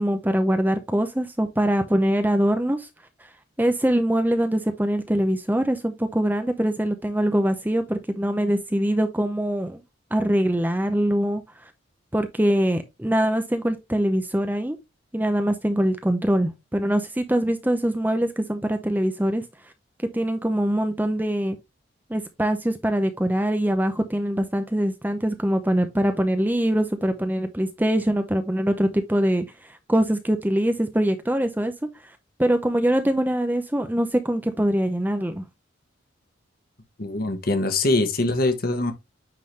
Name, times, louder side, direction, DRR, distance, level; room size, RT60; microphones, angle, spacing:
voice 1, 0.0-2.9 3.6-9.8 10.1-11.7 12.1-14.8 15.1-19.4 20.1-21.6 22.1-31.7 32.4-35.4, right 1 dB, 10° right, 0.6 m, -23 dB
voice 2, 37.0-38.9, left 2 dB, 45° left, 1.2 m, -23 dB
9.3 x 3.7 x 3.1 m
head